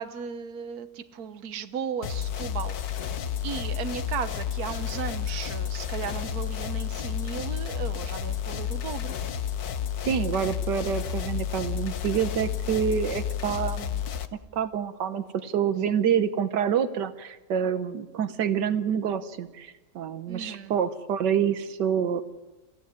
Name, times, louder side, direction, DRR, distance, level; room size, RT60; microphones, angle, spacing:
voice 1, 0.0-9.2 15.9-16.1 20.3-20.7, right 7 dB, 65° right, 1.5 m, -36 dB
sound 1, 2.0-14.3, left 9 dB, 65° left, 1.5 m, -31 dB
voice 2, 10.1-14.0 14.5-22.2, right 8 dB, 85° right, 1.6 m, -27 dB
28.5 x 15.5 x 9.6 m
omnidirectional pair, 1.8 m